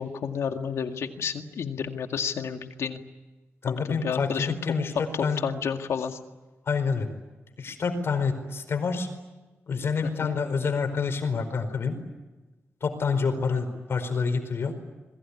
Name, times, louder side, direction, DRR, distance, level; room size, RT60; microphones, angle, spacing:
voice 1, 0.0-3.0 3.7-4.5 5.1-6.2 10.0-10.4, left 7 dB, 85° left, 6 dB, 2.1 m, -31 dB
voice 2, 3.6-4.9 5.2-5.4 6.7-7.1 7.6-9.1 9.7-12.0 12.8-14.7, left 5 dB, 60° left, 9 dB, 4.7 m, -27 dB
27.5 x 21.5 x 9.9 m, 1.2 s
wide cardioid pair, 105°, 5 cm